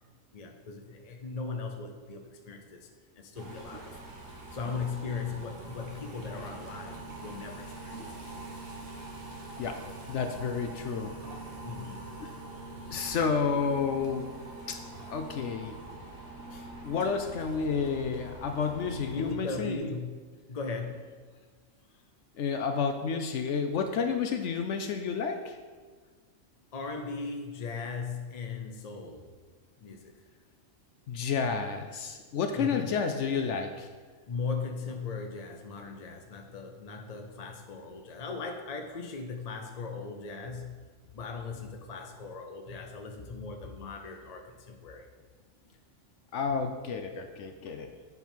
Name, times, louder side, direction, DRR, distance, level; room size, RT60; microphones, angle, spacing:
voice 1, 0.3-2.9 3.2-4.0 4.5-8.0 9.9-10.0 11.6-12.3 16.5-16.7 19.1-20.1 20.5-21.4 26.7-29.3 29.8-30.1 32.5-33.0 34.3-40.8 41.1-45.1, left 4 dB, 35° left, 4 dB, 0.7 m, -38 dB
sound 1, 3.3-19.3, right 2 dB, 50° right, 1.3 m, -44 dB
voice 2, 10.1-11.1 12.2-12.3 12.9-14.3 14.7-14.8 15.1-15.8 16.8-19.9 22.4-25.6 31.1-33.9 46.3-47.9, left 5 dB, 70° left, 6 dB, 0.9 m, -30 dB
8.1 x 5.4 x 4.4 m, 1.4 s
omnidirectional pair, 1.3 m